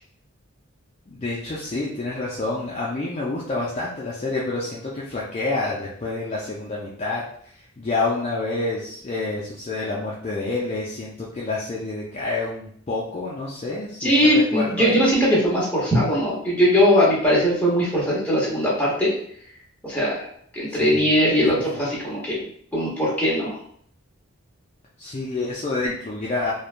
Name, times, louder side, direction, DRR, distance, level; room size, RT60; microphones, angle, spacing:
voice 1, 1.1-15.0 20.7-21.1 25.0-26.5, left 3 dB, 30° left, -5 dB, 0.4 m, -28 dB
voice 2, 14.0-19.1 19.8-20.3 20.5-22.4 22.7-23.6, equal, 5° left, -7 dB, 0.9 m, -20 dB
3.1 x 2.2 x 2.4 m, 0.62 s
head